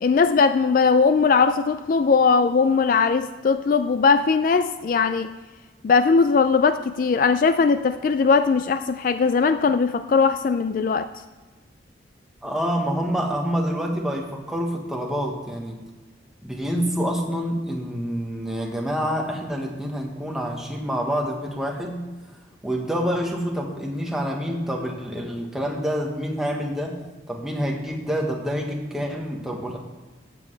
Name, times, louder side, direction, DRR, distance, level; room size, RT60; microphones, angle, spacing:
voice 1, 0.0-5.3 5.8-11.1, left 5 dB, 45° left, 11 dB, 0.3 m, -19 dB
voice 2, 12.4-15.8 16.4-22.1 22.6-27.0 27.3-29.8, equal, 5° right, -1 dB, 1.2 m, -27 dB
15.0 x 7.7 x 3.3 m, 1.3 s
head